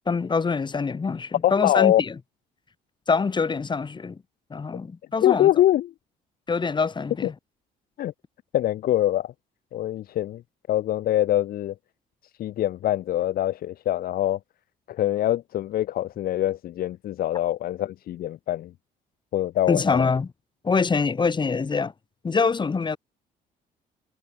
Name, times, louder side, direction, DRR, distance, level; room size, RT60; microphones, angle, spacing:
voice 1, 0.1-2.2 3.1-4.2 4.5-5.5 6.5-7.3 19.7-20.3 20.6-21.9 22.2-23.0, left 5 dB, 25° left, 5.3 m, -24 dB
voice 2, 1.4-2.0 5.2-5.9 7.2-7.3 8.0-8.1 8.5-9.3 9.7-10.4 10.7-11.7 12.4-14.4 14.9-18.7 19.3-20.0, left 13 dB, 60° left, 1.1 m, -23 dB
cardioid pair, 110°, 17 cm